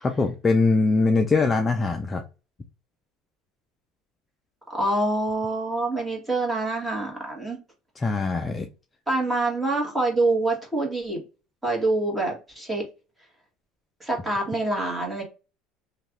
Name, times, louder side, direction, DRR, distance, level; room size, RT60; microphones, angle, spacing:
voice 1, 0.0-2.2 8.0-8.7, left 3 dB, 20° left, 4 dB, 0.4 m, -22 dB
voice 2, 4.7-7.6 9.1-11.2 11.6-12.8 14.0-15.2, right 2 dB, 10° right, -1 dB, 1.6 m, -26 dB
3.0 x 2.4 x 2.9 m, 0.31 s
supercardioid pair, 120°, 0 cm